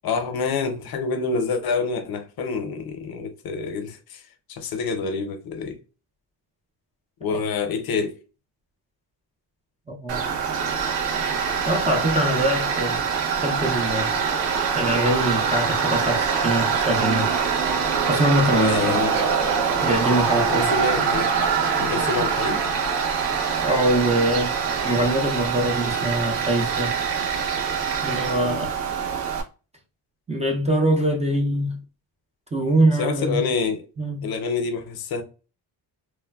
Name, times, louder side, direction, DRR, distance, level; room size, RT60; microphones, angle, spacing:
voice 1, 0.0-4.2 4.5-5.8 7.2-8.1 18.5-19.2 20.3-21.3 21.8-22.7 28.4-28.7 32.9-33.8 34.2-35.2, left 5 dB, 60° left, 0.6 m, -27 dB
voice 2, 9.9-10.3 11.6-13.0 13.3-14.2 14.7-17.3 18.1-19.0 19.8-20.7 23.6-24.5 24.8-26.9 28.0-28.7 30.3-31.8 32.5-33.4 34.0-34.3, right 1 dB, 15° right, 0.4 m, -23 dB
Tools, 10.1-29.4, right 6 dB, 85° right, 0.7 m, -24 dB
3.1 x 2.0 x 2.2 m
cardioid pair, 150°, 42 cm